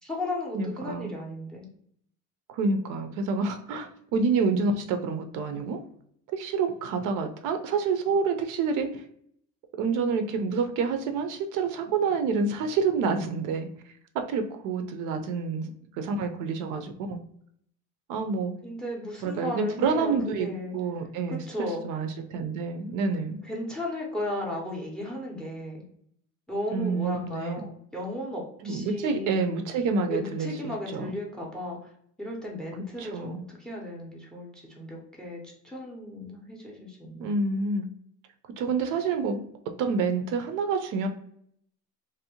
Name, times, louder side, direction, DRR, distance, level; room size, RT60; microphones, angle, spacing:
voice 1, 0.0-1.7 18.6-20.8 21.3-21.8 23.4-25.8 26.5-29.3 30.1-31.9 32.2-37.4, left 1 dB, ahead, -1 dB, 0.5 m, -35 dB
voice 2, 0.5-1.1 2.5-5.8 6.3-9.0 9.8-13.7 14.1-17.2 18.1-18.5 19.2-23.4 26.7-27.6 28.6-31.1 33.0-33.4 37.2-37.9 38.6-39.4 39.8-41.1, right 4 dB, 65° right, 7 dB, 0.5 m, -28 dB
2.6 x 2.0 x 2.7 m, 0.67 s
cardioid pair, 140°, 34 cm